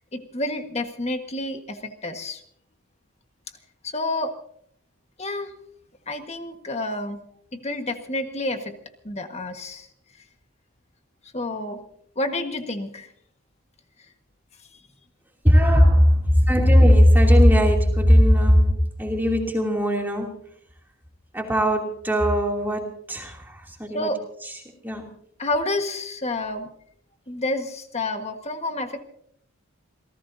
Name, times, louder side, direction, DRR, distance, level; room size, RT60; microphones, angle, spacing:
voice 1, 0.1-2.4 3.8-4.3 5.2-5.5 6.1-7.2 7.5-8.8 9.0-9.9 11.3-11.8 12.1-13.1 23.9-24.2 25.4-26.7 27.3-29.0, left 2 dB, 30° left, 6 dB, 1.5 m, -29 dB
voice 2, 15.4-20.3 21.3-24.1 24.4-25.1, equal, 10° right, 0 dB, 2.8 m, -18 dB
27.5 x 18.0 x 2.7 m, 0.66 s
head